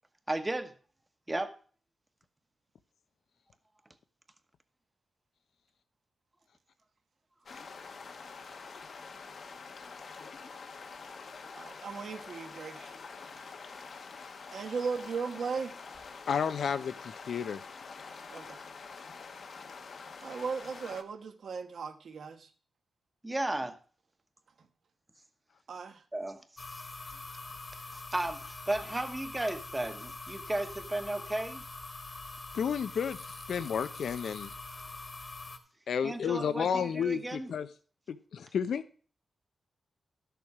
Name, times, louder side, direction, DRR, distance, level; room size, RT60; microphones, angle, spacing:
voice 1, 0.3-0.7 1.3-1.6 23.2-23.8 26.1-26.6 27.9-31.6 36.0-37.5, right 1 dB, 15° right, 9 dB, 1.1 m, -34 dB
sound 1, 7.4-21.0, left 4 dB, 60° left, 1.1 m, -46 dB
voice 2, 11.5-12.9 14.5-15.7 18.3-18.6 20.2-22.5 25.7-26.0, right 5 dB, 70° right, 7 dB, 1.2 m, -37 dB
voice 3, 16.3-17.6 32.5-33.2 33.5-34.5 35.9-37.7 38.1-38.8, left 7 dB, 80° left, 13 dB, 0.7 m, -31 dB
sound 2, 26.6-35.6, left 3 dB, 35° left, 1.5 m, -44 dB
12.0 x 6.9 x 4.8 m, 0.40 s
wide cardioid pair, 115°, 0 cm